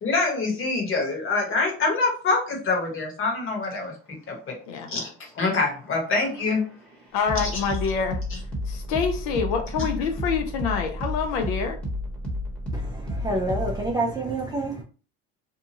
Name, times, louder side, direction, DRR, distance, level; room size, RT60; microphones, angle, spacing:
voice 1, 0.0-3.9 4.3-4.5 4.9-5.1 5.3-6.6 7.3-7.6 8.3-8.4, left 3 dB, 35° left, 0 dB, 1.3 m, -25 dB
sound 1, 5.2-13.9, left 1 dB, 5° left, 1.0 m, -32 dB
voice 2, 7.1-8.2 8.7-11.8, left 6 dB, 70° left, 5 dB, 0.6 m, -26 dB
voice 3, 12.7-14.8, right 2 dB, 10° right, -1 dB, 0.4 m, -28 dB
2.8 x 2.3 x 2.7 m, 0.39 s
supercardioid pair, 110°, 34 cm